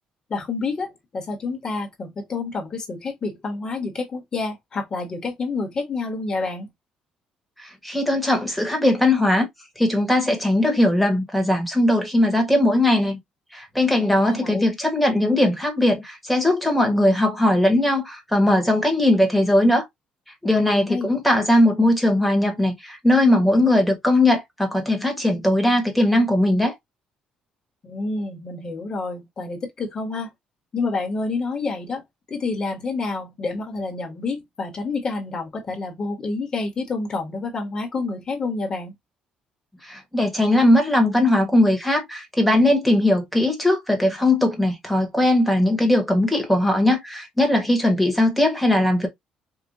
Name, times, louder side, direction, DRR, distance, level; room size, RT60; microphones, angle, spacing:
voice 1, 0.3-6.7 14.2-14.7 20.9-21.1 27.8-30.3 30.7-32.0 32.3-38.9, left 3 dB, 30° left, 1.1 m, -28 dB
voice 2, 7.6-9.5 9.8-13.2 13.5-19.9 20.4-26.7 39.8-49.1, left 1 dB, ahead, 1.2 m, -19 dB
4.6 x 2.4 x 2.6 m
cardioid pair, 165°, 3 cm